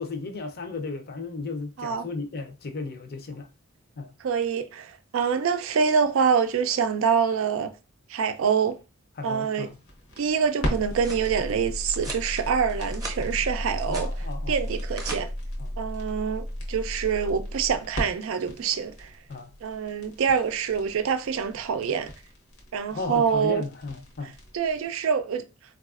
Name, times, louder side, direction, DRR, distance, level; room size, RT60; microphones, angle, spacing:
voice 1, 0.0-3.5 4.0-4.1 9.2-9.8 12.1-12.2 13.9-14.6 15.6-15.7 19.3-19.5 22.9-24.3, left 3 dB, 50° left, 0.5 m, -34 dB
voice 2, 4.2-7.7 8.1-8.8 9.2-9.7 10.2-14.1 14.5-15.3 15.8-19.1 19.6-22.1 22.7-23.6 24.5-25.4, right 6 dB, 70° right, 0.4 m, -25 dB
sound 1, 9.6-24.8, equal, 85° left, 0.9 m, -35 dB
sound 2, 10.6-11.3 11.9-12.3 12.7-13.2 13.5-14.1 14.7-15.2, right 2 dB, 15° right, 0.7 m, -39 dB
4.0 x 2.3 x 2.4 m
head